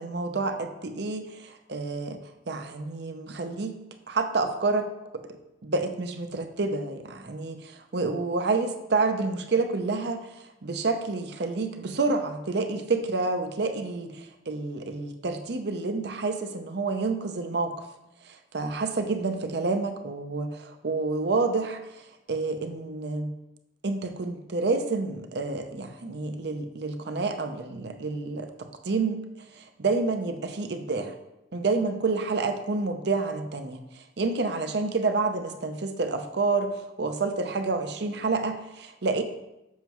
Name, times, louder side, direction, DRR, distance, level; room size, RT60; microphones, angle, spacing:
voice 1, 0.0-2.2 2.5-3.8 4.1-4.9 5.1-5.2 5.6-10.3 10.6-17.7 18.3-22.0 22.3-23.3 23.8-29.2 29.6-31.2 31.5-39.2, right 3 dB, 60° right, 7 dB, 0.6 m, -29 dB
7.3 x 5.9 x 3.0 m, 0.92 s
head